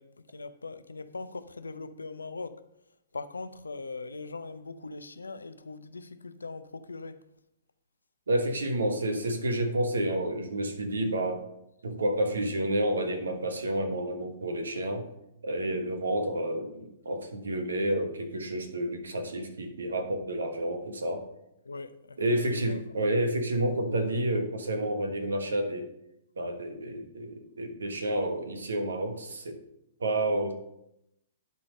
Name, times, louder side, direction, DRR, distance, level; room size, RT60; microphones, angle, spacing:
voice 1, 0.0-2.6 3.1-7.2 8.8-9.2 21.6-22.2 22.5-22.8, left 3 dB, 90° left, 0.6 m, -41 dB
voice 2, 8.3-11.4 11.8-15.1 15.4-21.2 22.2-25.9 26.4-29.6 30.0-30.5, right 1 dB, 80° right, 1.3 m, -30 dB
11.0 x 4.1 x 5.2 m
hypercardioid pair, 115°, 0 cm